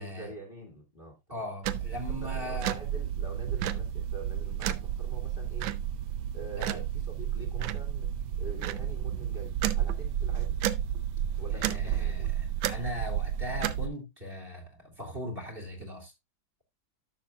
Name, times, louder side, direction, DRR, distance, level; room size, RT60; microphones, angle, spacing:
voice 1, 0.0-1.4 2.1-5.8 6.3-8.1 8.4-10.6 11.4-12.3, right 2 dB, 25° left, 2.0 m, -45 dB
voice 2, 1.3-2.8 6.6-6.8 11.5-16.1, left 1 dB, 30° right, 2.6 m, -39 dB
sound 1, 1.6-13.9, right 10 dB, 75° right, 1.4 m, -31 dB
12.0 x 6.9 x 2.3 m
omnidirectional pair, 2.2 m